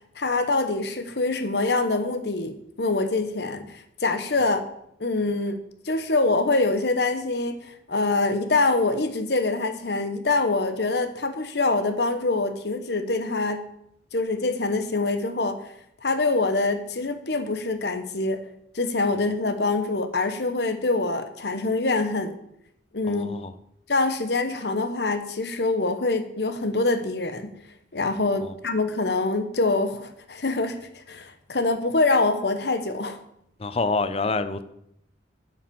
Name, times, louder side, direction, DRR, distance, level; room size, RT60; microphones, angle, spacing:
voice 1, 0.2-4.6 5.0-13.7 14.1-15.6 16.0-18.4 18.7-22.4 22.9-23.3 23.9-27.6 27.9-33.2, left 3 dB, 65° left, 1.0 m, -25 dB
voice 2, 23.1-23.5 28.4-28.5 33.6-34.6, left 3 dB, 35° left, 0.6 m, -27 dB
9.1 x 6.1 x 7.0 m
head